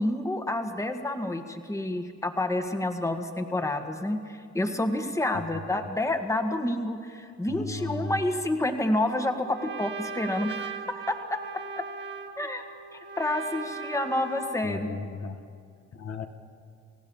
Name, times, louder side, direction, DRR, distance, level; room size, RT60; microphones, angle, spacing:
voice 1, 0.0-11.4 11.8-11.9 12.4-12.6 12.9-15.0, left 1 dB, 10° left, 6 dB, 1.7 m, -29 dB
voice 2, 7.5-8.2 14.6-15.4 15.9-16.3, left 4 dB, 60° left, 4 dB, 1.8 m, -35 dB
Trumpet, 9.1-14.7, right 6 dB, 35° right, 1.7 m, -39 dB
29.5 x 15.5 x 7.2 m, 2.3 s
cardioid pair, 90°, 30 cm